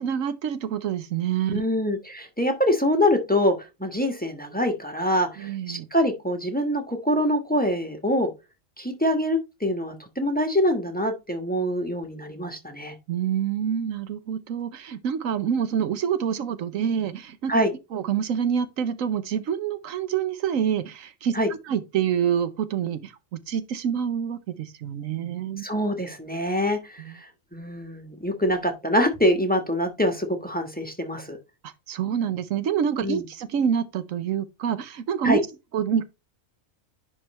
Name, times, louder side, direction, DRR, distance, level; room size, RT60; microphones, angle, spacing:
voice 1, 0.0-1.6 5.4-5.9 13.1-17.5 17.9-21.4 21.7-25.6 27.0-27.1 31.6-35.5 35.7-36.0, right 8 dB, 85° right, 1.2 m, -27 dB
voice 2, 1.5-8.3 8.8-12.9 17.5-17.7 21.3-21.5 25.6-31.4 33.0-33.2 35.2-35.4, equal, 5° left, 1.3 m, -25 dB
10.5 x 3.8 x 3.2 m
omnidirectional pair, 1.3 m